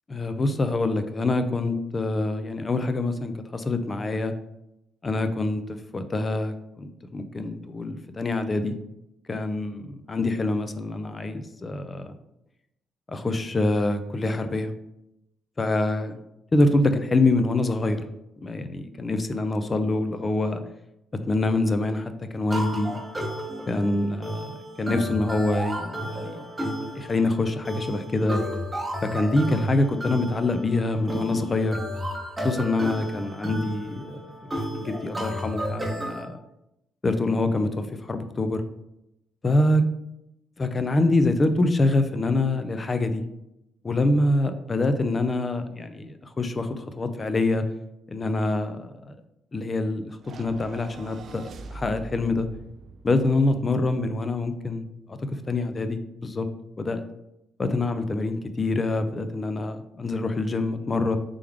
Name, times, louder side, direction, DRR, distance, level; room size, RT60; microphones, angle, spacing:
voice 1, 0.1-4.3 5.0-8.7 9.3-12.2 13.1-14.7 15.6-16.2 16.5-18.0 18.4-20.6 21.3-23.0 23.7-26.4 27.0-28.4 29.0-31.8 32.4-34.2 34.8-36.4 37.0-38.6 39.4-39.8 40.6-43.2 43.8-47.6 48.1-49.2 49.5-51.4 51.7-52.5 53.0-56.5 56.8-57.0 57.6-61.2, left 2 dB, 30° left, 9 dB, 0.4 m, -25 dB
sound 1, 22.5-36.2, equal, 15° right, 0.8 m, -32 dB
sound 2, 50.2-54.6, right 3 dB, 60° right, 0.3 m, -44 dB
3.4 x 3.4 x 3.4 m, 0.85 s
cardioid pair, 90°, 0 cm